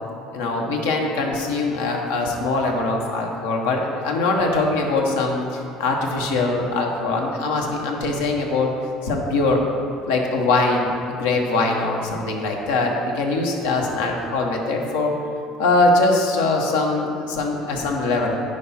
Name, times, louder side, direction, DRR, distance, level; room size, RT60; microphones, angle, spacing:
voice 1, 0.3-8.7 9.0-9.6 10.0-15.1 15.6-18.4, left 3 dB, 85° left, 1 dB, 1.0 m, -22 dB
9.8 x 4.8 x 4.2 m, 2.5 s
hypercardioid pair, 80°, 0 cm